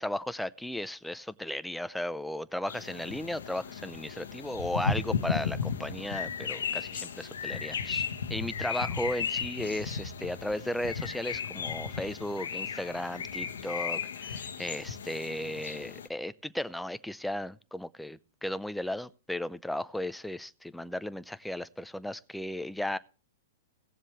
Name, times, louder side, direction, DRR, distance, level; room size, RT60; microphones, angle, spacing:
voice 1, 0.0-23.0, left 1 dB, ahead, 14 dB, 0.6 m, -35 dB
sound 1, 2.7-16.1, left 6 dB, 90° left, 1.1 m, -35 dB
18.0 x 7.3 x 3.2 m, 0.34 s
hypercardioid pair, 135°, 0 cm